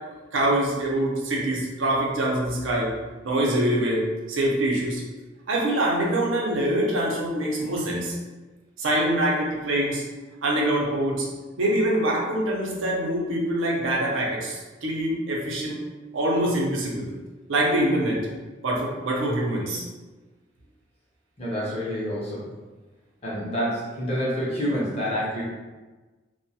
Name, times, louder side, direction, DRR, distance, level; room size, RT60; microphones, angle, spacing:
voice 1, 0.3-2.9 3.2-5.0 5.5-8.2 8.8-10.0 10.4-11.3 11.6-15.9 16.1-17.1 17.5-18.2 18.6-19.8, right 1 dB, 85° right, -3 dB, 0.6 m, -24 dB
voice 2, 21.4-22.5 23.2-25.4, equal, 30° left, -7 dB, 0.7 m, -28 dB
2.2 x 2.1 x 2.7 m, 1.3 s
head